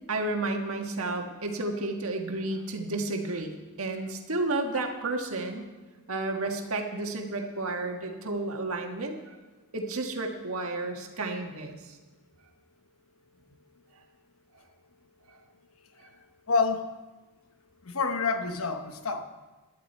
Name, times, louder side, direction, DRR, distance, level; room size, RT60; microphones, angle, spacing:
voice 1, 0.1-5.7 6.1-9.4 9.7-12.0 15.3-15.4 16.0-16.1, right 2 dB, 85° right, 3 dB, 1.6 m, -32 dB
voice 2, 16.5-16.9 17.8-19.2, left 4 dB, 75° left, 7 dB, 1.1 m, -28 dB
17.0 x 11.5 x 4.4 m, 1.2 s
head